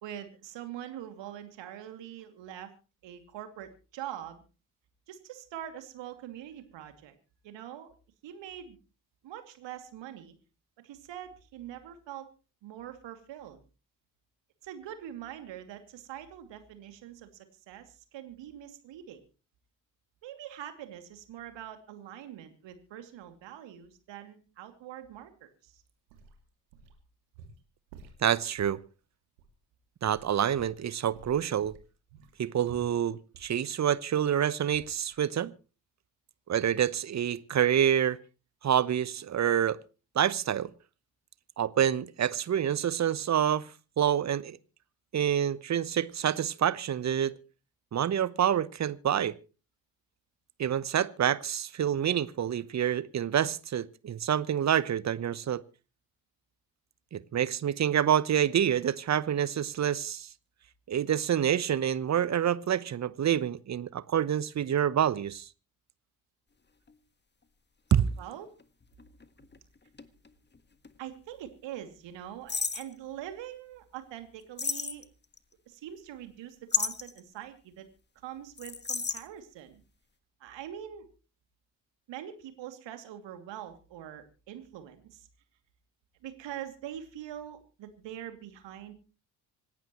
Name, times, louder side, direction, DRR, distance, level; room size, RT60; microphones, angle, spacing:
voice 1, 0.0-2.7 3.0-4.4 5.1-7.1 7.4-7.9 8.2-8.8 9.2-10.3 10.8-12.3 12.6-13.6 14.6-19.2 20.2-25.8 68.2-68.5 71.0-75.1 75.7-77.9 78.2-79.8 80.4-81.1 82.1-85.3 86.2-88.9, right 11 dB, 60° right, 2.7 m, -44 dB
sound 1, 25.9-27.1 27.3-28.8 29.4-29.5 30.0-30.8 31.1-34.4 34.7-35.2 35.4-35.5, right 5 dB, 75° right, 2.6 m, -52 dB
voice 2, 28.2-28.8 30.0-31.7 32.4-35.5 36.5-38.2 38.6-39.8 40.1-40.7 41.6-43.7 44.0-44.6 45.1-47.3 47.9-49.3 50.6-55.6 57.1-60.3 60.9-65.5 67.9-68.0, right 9 dB, 35° right, 1.0 m, -27 dB
sound 2, 66.9-67.0 67.9-70.6 70.8-70.9 72.5-72.9 74.6-75.4 76.7-77.2 78.6-79.2, left 5 dB, 20° left, 1.6 m, -32 dB
26.0 x 12.0 x 3.1 m
figure-of-eight pair, 50°, 50 cm